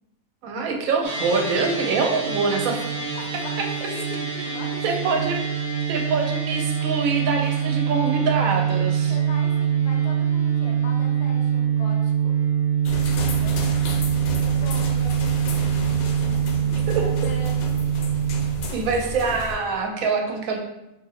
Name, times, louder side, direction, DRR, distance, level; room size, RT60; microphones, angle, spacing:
voice 1, 0.4-2.8 4.8-9.1 16.9-17.0 18.7-20.6, right 4 dB, 75° right, 2 dB, 1.0 m, -24 dB
sound 1, 1.0-18.5, right 8 dB, 45° right, 1.0 m, -24 dB
voice 2, 3.1-5.2 9.1-12.3 13.3-13.6 14.4-15.7 16.1-17.8, left 2 dB, 55° left, 1 dB, 0.7 m, -40 dB
sound 2, 12.8-19.6, left 1 dB, 75° left, 1.0 m, -32 dB
2.7 x 2.6 x 4.0 m, 0.91 s
omnidirectional pair, 1.5 m